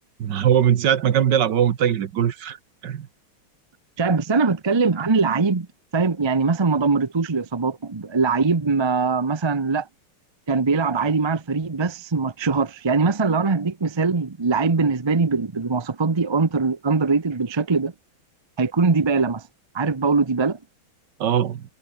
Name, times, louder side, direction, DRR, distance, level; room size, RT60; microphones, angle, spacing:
voice 1, 0.2-2.6 2.8-3.1 21.2-21.6, right 9 dB, 60° right, 1.7 m, -20 dB
voice 2, 4.0-5.7 5.9-9.9 10.5-17.9 18.6-19.4 19.7-20.6, right 4 dB, 30° right, 0.5 m, -22 dB
omnidirectional pair, 2.2 m